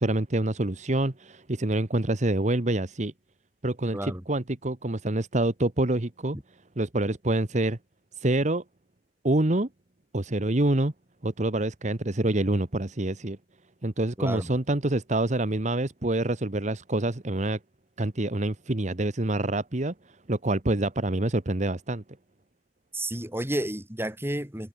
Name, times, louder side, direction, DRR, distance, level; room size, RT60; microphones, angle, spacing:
voice 1, 0.0-3.1 3.6-6.4 6.8-7.8 8.2-8.6 9.2-9.7 10.1-10.9 11.2-13.4 13.8-17.6 18.0-19.9 20.3-22.0, right 1 dB, 40° right, 1.3 m, -26 dB
voice 2, 3.9-4.2 14.2-14.5 22.9-24.7, right 1 dB, 15° right, 3.7 m, -31 dB
head